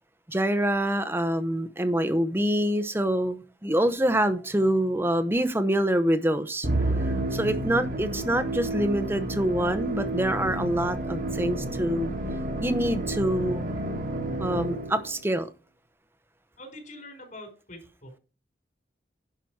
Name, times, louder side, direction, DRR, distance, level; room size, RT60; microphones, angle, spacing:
voice 1, 0.3-6.7 7.0-12.1 12.6-13.7 14.4-15.5, right 1 dB, 15° right, 0.8 m, -26 dB
Musical instrument, 6.6-15.2, right 1 dB, 50° right, 1.3 m, -30 dB
voice 2, 16.6-18.2, left 1 dB, 45° left, 4.6 m, -44 dB
10.5 x 5.8 x 4.7 m
head